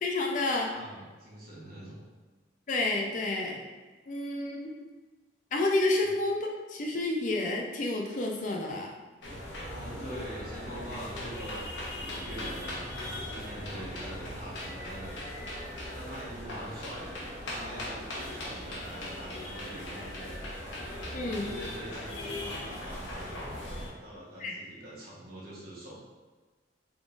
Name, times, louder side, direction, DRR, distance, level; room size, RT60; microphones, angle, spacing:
voice 1, 0.0-0.7 2.7-3.7 4.1-4.7 5.5-9.0 21.1-21.4 24.4-24.6, left 2 dB, 40° left, 0 dB, 0.4 m, -30 dB
voice 2, 0.7-2.1 9.6-23.5 23.8-26.0, right 1 dB, 50° right, -7 dB, 1.2 m, -44 dB
sound 1, 9.2-23.9, left 1 dB, 75° left, 0.9 m, -39 dB
3.6 x 3.6 x 2.5 m, 1.3 s
head